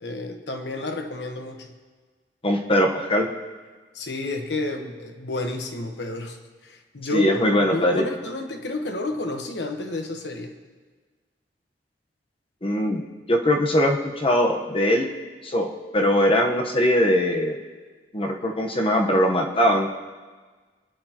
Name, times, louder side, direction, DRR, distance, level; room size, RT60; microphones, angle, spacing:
voice 1, 0.0-1.7 3.9-6.4 6.6-10.5, left 2 dB, 75° left, 4 dB, 1.2 m, -30 dB
voice 2, 2.4-3.3 7.1-8.0 12.6-13.0 13.3-15.1 15.4-17.6 18.1-19.9, equal, 30° left, 2 dB, 1.1 m, -21 dB
26.0 x 10.5 x 3.0 m, 1.4 s
head